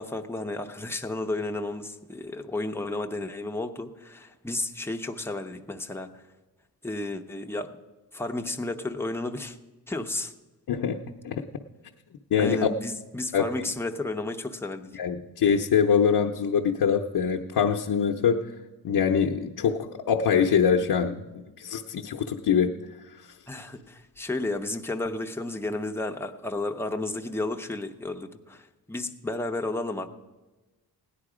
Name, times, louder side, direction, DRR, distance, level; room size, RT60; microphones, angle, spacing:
voice 1, 0.0-6.1 6.8-7.8 8.1-9.6 9.9-10.3 12.4-14.9 23.5-30.1, left 2 dB, 5° left, 4 dB, 0.7 m, -32 dB
voice 2, 10.7-11.4 12.3-12.7 13.3-13.7 14.9-18.5 18.8-21.3 21.6-22.7, left 7 dB, 65° left, 1 dB, 0.7 m, -24 dB
17.0 x 10.5 x 4.9 m, 1.2 s
wide cardioid pair, 145°, 40 cm